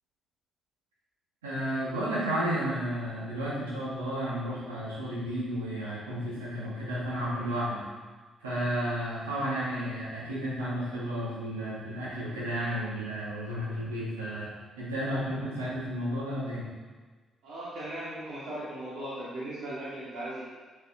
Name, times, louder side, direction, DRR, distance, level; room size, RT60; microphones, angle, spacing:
voice 1, 1.4-7.8 8.4-14.5 14.8-16.6, equal, 90° right, -8 dB, 3.0 m, -32 dB
voice 2, 17.4-20.4, right 1 dB, 70° right, -9 dB, 2.7 m, -38 dB
9.2 x 8.0 x 4.7 m, 1.4 s
hypercardioid pair, 45°, 0 cm